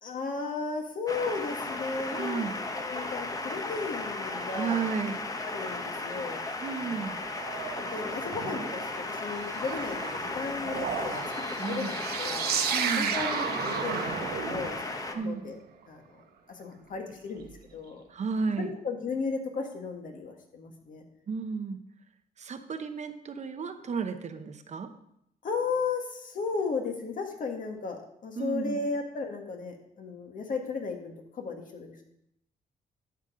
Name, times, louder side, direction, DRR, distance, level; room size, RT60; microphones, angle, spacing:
voice 1, 0.0-2.5 2.7-4.9 5.4-6.4 6.7-7.2 7.8-11.2 11.6-12.5 13.0-14.2 14.5-15.6 15.9-16.2 16.5-18.0 18.6-21.0 25.4-32.0, left 4 dB, 55° left, 3 dB, 1.7 m, -35 dB
sound 1, 1.1-15.2, left 2 dB, 20° left, 0.9 m, -35 dB
voice 2, 2.1-2.5 4.5-5.2 6.6-7.2 11.6-11.9 12.7-13.1 15.1-15.4 18.1-18.7 21.3-21.8 22.4-24.9 28.4-28.8, right 5 dB, 45° right, 8 dB, 0.8 m, -33 dB
sound 2, 7.0-15.2 17.4-17.5, right 7 dB, 75° right, 1.0 m, -34 dB
11.0 x 7.2 x 3.8 m, 0.75 s
cardioid pair, 110°, 16 cm